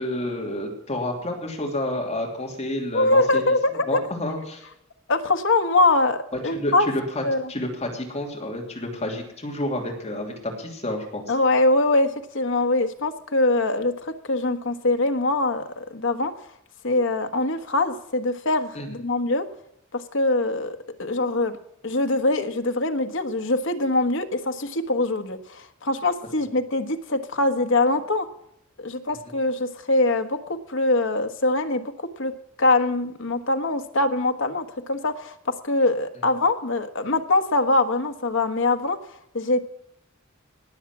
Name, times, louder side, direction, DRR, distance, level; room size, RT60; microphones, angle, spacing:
voice 1, 0.0-3.5 3.9-4.7 6.4-11.2 18.7-18.9, left 1 dB, 30° left, 0 dB, 2.9 m, -29 dB
voice 2, 2.9-4.0 5.1-6.9 7.2-7.5 11.3-16.3 16.8-19.4 19.9-21.6 21.8-28.3 28.8-32.3 32.6-35.4 35.6-39.6, left 2 dB, 65° left, 7 dB, 1.3 m, -23 dB
19.0 x 7.4 x 6.0 m, 0.76 s
head